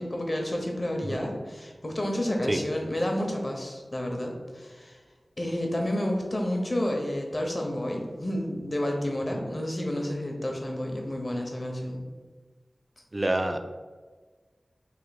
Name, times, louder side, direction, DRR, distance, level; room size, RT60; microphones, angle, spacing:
voice 1, 0.0-5.0 5.4-12.0, left 1 dB, 35° left, 1 dB, 0.7 m, -30 dB
voice 2, 13.1-13.6, right 1 dB, 35° right, 7 dB, 0.3 m, -27 dB
3.2 x 2.6 x 4.0 m, 1.4 s
wide cardioid pair, 55°, 0 cm